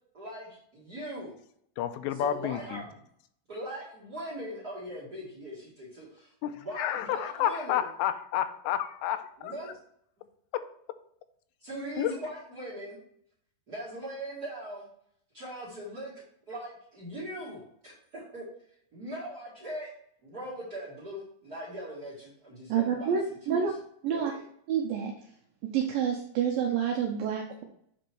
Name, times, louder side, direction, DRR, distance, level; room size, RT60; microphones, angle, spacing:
voice 1, 0.1-1.3 2.2-3.0 3.5-7.8 9.4-9.7 11.6-13.0 13.7-14.9 15.3-18.5 18.9-19.9 20.2-23.1 23.4-23.6 24.1-24.4, right 1 dB, 40° right, 1.3 m, -40 dB
voice 2, 1.8-2.8 6.4-9.5 10.5-10.6 12.0-12.1, left 11 dB, 90° left, 2.8 m, -30 dB
voice 3, 22.7-23.7 24.0-24.3 24.7-25.1 25.7-27.6, right 7 dB, 90° right, 2.0 m, -28 dB
7.8 x 4.4 x 4.5 m
omnidirectional pair, 4.9 m